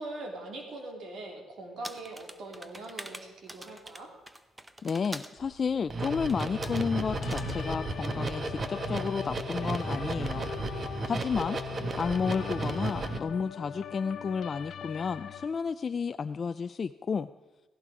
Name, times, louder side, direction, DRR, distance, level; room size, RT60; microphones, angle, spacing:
voice 1, 0.0-4.1 11.7-12.2, right 2 dB, 70° right, 2 dB, 3.0 m, -42 dB
sound 1, 1.8-5.4 6.3-6.9 7.2-7.6, right 1 dB, 15° right, 0.9 m, -44 dB
voice 2, 4.8-10.5 11.1-11.6 12.0-17.3, left 5 dB, 40° left, 10 dB, 0.4 m, -31 dB
sound 2, 5.4-5.5 5.8-13.2, right 3 dB, 40° right, 1.3 m, -34 dB
sound 3, 6.0-15.5, left 8 dB, 65° left, 0.9 m, -40 dB
16.5 x 16.0 x 5.0 m, 1.2 s
cardioid pair, 90°, 0 cm